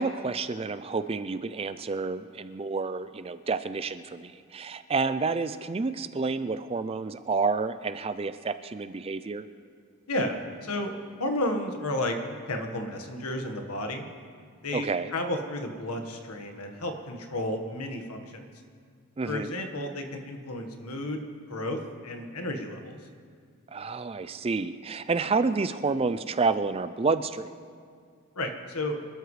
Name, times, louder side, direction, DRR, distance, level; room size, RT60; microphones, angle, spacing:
voice 1, 0.0-9.4 14.7-15.1 19.2-19.5 23.7-27.5, right 4 dB, 25° right, 12 dB, 0.3 m, -29 dB
voice 2, 10.1-10.9 11.2-12.2 12.5-14.1 14.6-18.5 19.2-21.2 21.5-23.0 28.3-29.0, left 1 dB, 85° left, 4 dB, 1.5 m, -32 dB
25.5 x 13.0 x 3.3 m, 2.1 s
head